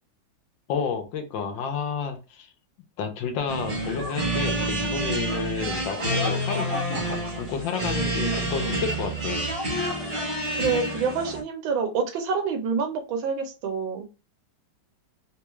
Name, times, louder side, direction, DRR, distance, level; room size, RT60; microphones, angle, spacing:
voice 1, 0.7-2.5 3.0-9.5, left 6 dB, 75° left, 5 dB, 1.4 m, -31 dB
sound 1, 3.5-11.4, right 1 dB, 35° right, 0.8 m, -28 dB
voice 2, 10.5-14.1, right 5 dB, 80° right, 4 dB, 1.5 m, -27 dB
3.7 x 2.3 x 3.0 m, 0.31 s
omnidirectional pair, 2.1 m